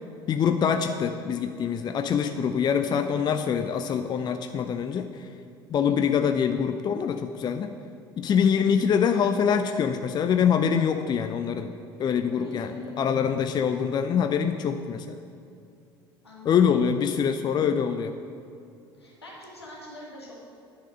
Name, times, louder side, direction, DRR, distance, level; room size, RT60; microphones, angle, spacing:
voice 1, 0.3-5.3 5.7-7.7 8.2-15.2 16.4-18.1, left 7 dB, 35° left, 8 dB, 0.5 m, -24 dB
voice 2, 12.3-13.5 16.2-17.0 19.0-20.3, left 1 dB, 85° left, -4 dB, 1.8 m, -45 dB
9.6 x 6.3 x 5.3 m, 2.5 s
figure-of-eight pair, 60°, 13 cm